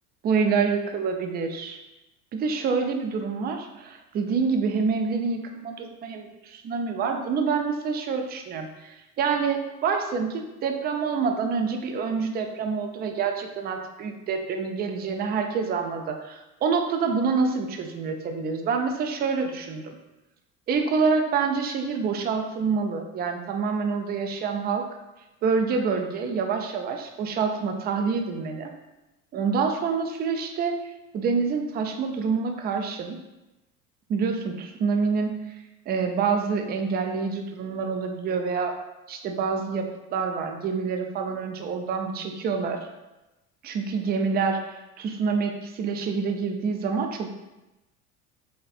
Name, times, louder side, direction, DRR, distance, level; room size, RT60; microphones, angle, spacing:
voice 1, 0.2-1.8 2.3-20.0 20.7-24.9 25.4-28.7 29.3-30.8 31.1-33.2 34.1-35.3 35.9-38.7 39.1-42.9 43.6-47.3, right 5 dB, 25° right, 5 dB, 0.3 m, -27 dB
4.2 x 3.2 x 2.4 m, 1.0 s
hypercardioid pair, 75°, 45 cm